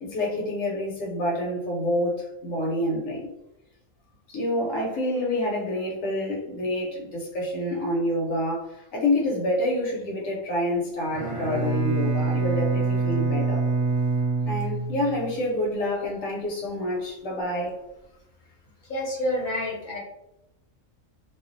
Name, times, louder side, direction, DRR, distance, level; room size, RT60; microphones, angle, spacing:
voice 1, 0.0-3.3 4.3-13.6 14.4-17.8, left 1 dB, 80° left, -1 dB, 1.0 m, -27 dB
Bowed string instrument, 11.0-15.4, right 3 dB, 45° right, 0.8 m, -25 dB
voice 2, 18.8-20.0, left 1 dB, 50° left, -3 dB, 0.6 m, -28 dB
2.4 x 2.2 x 2.4 m, 0.89 s
omnidirectional pair, 1.4 m